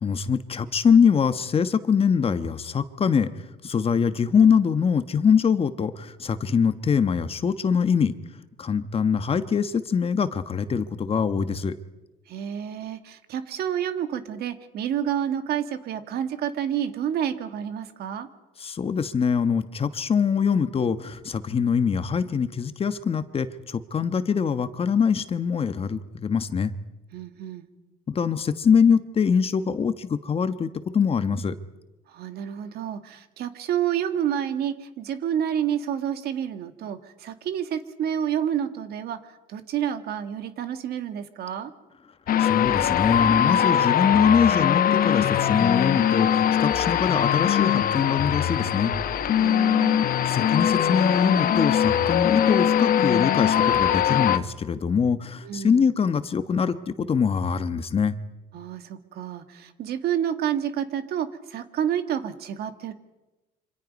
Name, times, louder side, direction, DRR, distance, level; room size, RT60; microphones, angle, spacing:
voice 1, 0.0-8.1 8.6-11.7 18.6-26.7 28.1-31.5 42.4-48.9 50.2-58.2, left 6 dB, 35° left, 11 dB, 1.3 m, -23 dB
voice 2, 12.3-18.3 27.1-27.7 32.1-41.7 49.4-50.0 55.4-55.9 58.5-62.9, right 9 dB, 70° right, 9 dB, 1.8 m, -29 dB
sound 1, 42.3-54.4, left 10 dB, 60° left, 1.2 m, -22 dB
26.5 x 26.0 x 5.4 m, 1.1 s
cardioid pair, 110°, 17 cm